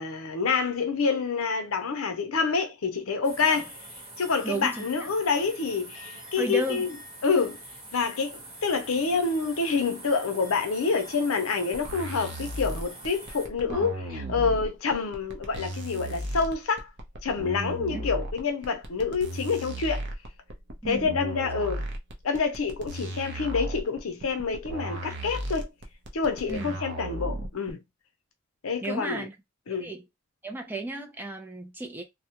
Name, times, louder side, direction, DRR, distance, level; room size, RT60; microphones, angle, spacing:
voice 1, 0.0-3.7 4.2-6.9 7.2-7.6 7.9-16.9 17.2-20.0 20.9-21.8 22.2-25.7 26.1-27.8 28.6-29.3 29.7-29.9, left 5 dB, 70° left, 0.6 m, -27 dB
sound 1, 3.2-13.5, right 1 dB, 25° right, 1.0 m, -44 dB
voice 2, 4.4-4.8 6.4-6.9 13.6-13.9 17.9-18.0 20.8-21.2 26.5-26.7 28.8-29.3 29.7-30.0 30.4-32.0, right 2 dB, 10° right, 0.4 m, -33 dB
sound 2, 11.7-27.7, right 1 dB, 55° right, 0.6 m, -35 dB
2.3 x 2.1 x 2.8 m
head